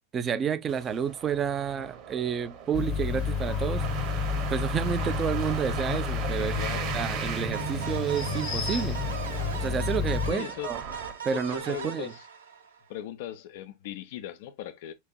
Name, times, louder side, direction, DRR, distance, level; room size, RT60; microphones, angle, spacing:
voice 1, 0.1-3.8 4.5-6.6 6.9-9.0 9.6-10.8 11.2-12.1, right 7 dB, 25° right, 0.5 m, -30 dB
sound 1, 0.7-11.9, right 8 dB, 40° right, 0.9 m, -39 dB
sound 2, 2.7-10.3, left 5 dB, 35° left, 1.0 m, -30 dB
voice 2, 6.3-7.0 10.3-10.8 11.3-12.3 12.9-14.9, left 11 dB, 50° left, 0.5 m, -38 dB
sound 3, 7.5-12.9, right 7 dB, 70° right, 0.9 m, -39 dB
6.1 x 2.6 x 2.2 m
figure-of-eight pair, 90°, 0 cm